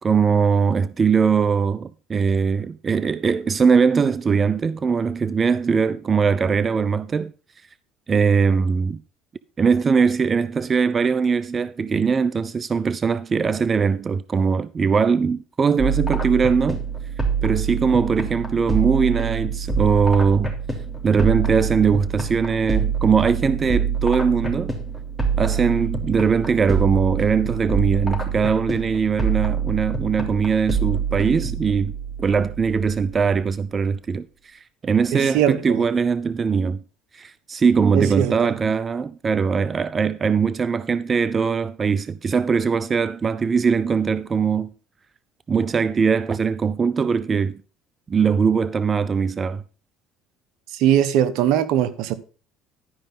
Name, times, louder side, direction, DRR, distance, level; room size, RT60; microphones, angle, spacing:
voice 1, 0.0-7.3 8.1-9.0 9.6-16.8 17.4-20.5 21.0-24.7 25.4-31.9 32.2-36.8 37.1-44.7 45.5-47.6 48.1-49.6, right 5 dB, 35° right, 0.5 m, -21 dB
sound 1, 15.8-33.4, right 6 dB, 5° right, 3.1 m, -26 dB
voice 2, 35.1-35.8 37.9-38.3 50.7-52.2, right 10 dB, 70° right, 0.9 m, -20 dB
12.0 x 5.2 x 5.4 m
supercardioid pair, 80°, 0 cm